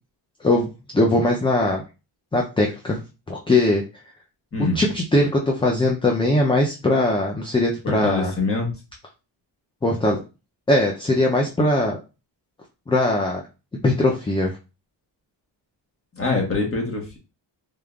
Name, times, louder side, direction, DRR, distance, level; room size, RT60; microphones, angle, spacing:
voice 1, 0.9-1.8 2.3-3.0 3.3-3.8 4.7-8.3 9.8-10.2 10.7-12.0 12.9-13.4 13.8-14.6, left 1 dB, 10° left, 0 dB, 0.4 m, -20 dB
voice 2, 7.8-8.7 16.2-17.2, left 3 dB, 30° left, 1 dB, 1.3 m, -24 dB
3.7 x 3.6 x 2.3 m, 0.30 s
wide cardioid pair, 130°, 44 cm